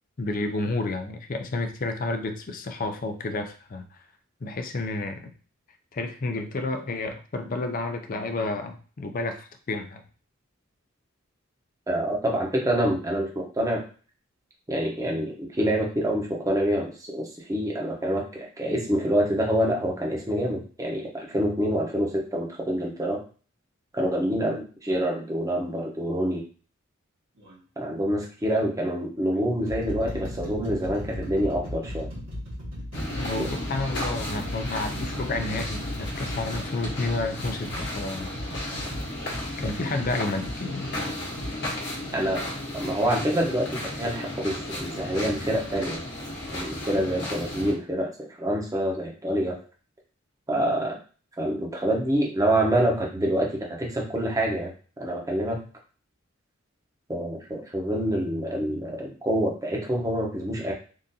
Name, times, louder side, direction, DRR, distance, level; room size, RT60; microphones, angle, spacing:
voice 1, 0.2-3.9 4.4-5.3 5.9-10.0 33.2-38.3 39.6-40.9, left 2 dB, 40° left, 6 dB, 0.5 m, -30 dB
voice 2, 11.9-13.8 14.7-23.2 23.9-26.4 27.8-32.1 33.4-33.5 42.1-42.4 42.7-46.0 46.5-49.6 50.5-51.0 51.4-54.7 55.0-55.6 57.1-60.7, right 1 dB, 15° right, -1 dB, 0.8 m, -26 dB
sound 1, 27.4-27.6 28.5-28.7 29.3-40.6 41.4-41.6, left 1 dB, 65° right, 1.5 m, -36 dB
sound 2, 32.9-47.7, left 1 dB, 55° left, 1.1 m, -34 dB
3.6 x 2.5 x 2.7 m, 0.39 s
head